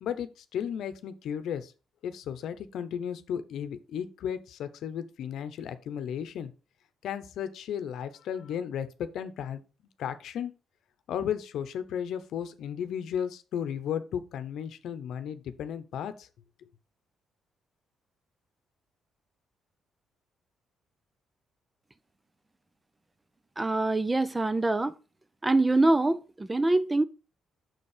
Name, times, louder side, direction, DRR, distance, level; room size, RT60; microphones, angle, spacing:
voice 1, 0.0-1.7 2.0-6.5 7.0-9.6 10.0-10.5 11.1-16.3, left 8 dB, 75° left, 0.8 m, -34 dB
voice 2, 23.6-25.0 25.4-27.0, right 2 dB, 20° right, 0.5 m, -24 dB
6.4 x 4.5 x 4.9 m
cardioid pair, 90°, 0 cm